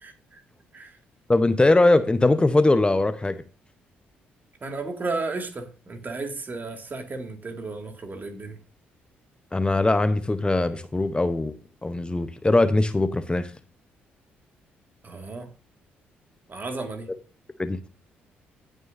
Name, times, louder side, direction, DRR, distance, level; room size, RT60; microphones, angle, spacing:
voice 1, 0.0-0.4 0.7-0.9 4.6-8.6 15.0-15.5 16.5-17.1, right 3 dB, 35° right, 5 dB, 2.1 m, -33 dB
voice 2, 1.3-3.4 9.5-11.5 11.8-13.5 17.1-17.2 17.6-17.8, left 2 dB, 20° left, 11 dB, 0.8 m, -21 dB
18.0 x 6.4 x 2.7 m, 0.34 s
hypercardioid pair, 45°, 5 cm